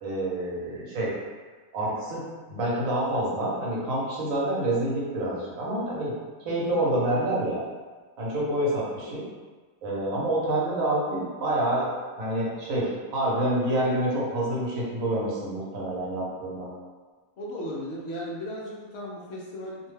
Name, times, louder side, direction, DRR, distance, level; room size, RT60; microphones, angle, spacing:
voice 1, 0.0-1.1 1.7-2.2 2.5-6.2 6.4-7.6 8.2-9.2 9.8-16.7, right 1 dB, 75° right, -5 dB, 1.2 m, -27 dB
voice 2, 17.4-19.9, equal, 60° left, -4 dB, 0.7 m, -36 dB
2.7 x 2.1 x 3.1 m, 1.4 s
omnidirectional pair, 1.4 m